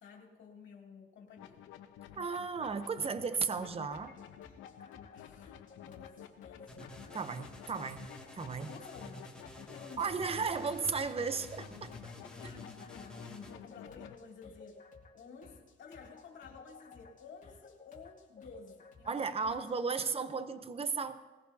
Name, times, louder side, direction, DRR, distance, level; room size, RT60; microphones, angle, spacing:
voice 1, 0.0-1.6 5.1-6.7 8.6-10.3 12.3-14.8 15.1-19.6, left 5 dB, 70° left, -1 dB, 2.8 m, -53 dB
sound 1, 1.4-14.2, left 10 dB, 90° left, 0.9 m, -52 dB
voice 2, 2.2-4.1 7.1-8.1 8.3-8.7 10.0-11.9 12.4-12.5 19.1-21.2, right 5 dB, 30° right, 11 dB, 0.8 m, -35 dB
sound 2, 3.9-19.8, left 4 dB, 40° left, 2.4 m, -56 dB
sound 3, 6.7-13.5, left 1 dB, 5° left, 2.3 m, -50 dB
20.5 x 15.0 x 2.8 m, 1.2 s
cardioid pair, 90°, 20 cm